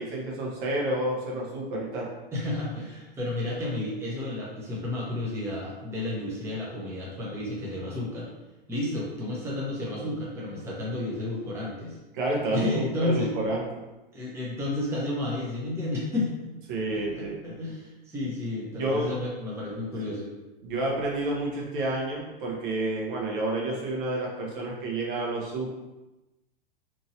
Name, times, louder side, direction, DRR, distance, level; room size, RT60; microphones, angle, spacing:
voice 1, 0.0-2.1 12.1-13.7 16.7-17.5 18.7-19.1 20.6-25.7, right 2 dB, 60° right, -2 dB, 1.0 m, -29 dB
voice 2, 2.3-8.3 8.7-12.0 12.5-13.3 14.1-16.5 17.1-20.3, left 2 dB, 10° right, -5 dB, 0.7 m, -31 dB
2.9 x 2.7 x 2.7 m, 1.0 s
hypercardioid pair, 110°, 29 cm